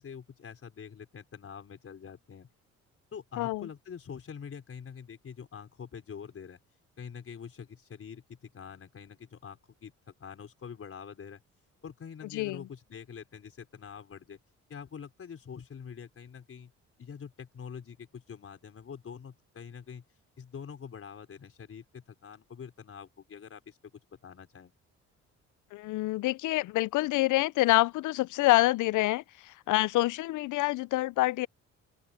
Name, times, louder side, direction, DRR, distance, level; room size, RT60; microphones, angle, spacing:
voice 1, 0.0-2.5 3.1-6.6 7.0-11.4 11.8-14.4 14.7-16.7 17.0-20.0 20.4-23.8 24.2-24.7, left 7 dB, 50° left, 4.9 m, -45 dB
voice 2, 3.4-3.7 12.3-12.7 25.7-31.5, left 18 dB, 80° left, 0.5 m, -27 dB
open air
cardioid pair, 90°, 30 cm